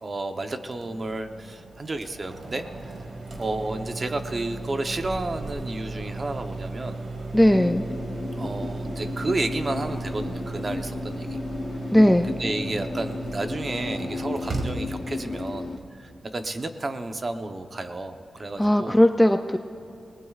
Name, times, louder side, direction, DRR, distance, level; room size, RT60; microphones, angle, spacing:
voice 1, 0.0-3.0 3.4-7.0 8.4-11.4 12.3-19.0, right 2 dB, 30° right, 7 dB, 0.8 m, -32 dB
sound 1, 0.7-15.9, right 3 dB, 50° right, 1.9 m, -36 dB
voice 2, 7.3-7.9 11.9-12.3 18.6-19.6, left 1 dB, 5° left, 7 dB, 0.4 m, -18 dB
sound 2, 7.4-15.8, left 3 dB, 35° left, 0.7 m, -34 dB
29.5 x 18.5 x 2.4 m, 2.9 s
wide cardioid pair, 165°, 0 cm